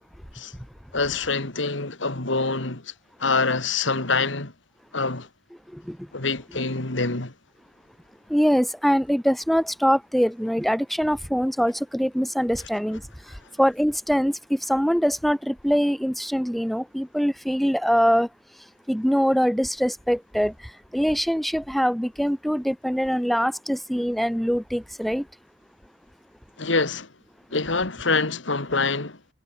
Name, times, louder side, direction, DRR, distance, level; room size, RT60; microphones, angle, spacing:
voice 1, 0.9-2.9 3.2-4.5 4.9-5.3 6.1-7.3 26.6-27.1 27.5-29.2, left 3 dB, 90° left, 2.7 m, -25 dB
voice 2, 8.3-13.0 13.6-18.3 18.9-20.5 20.9-25.2, equal, ahead, 2.4 m, -23 dB
head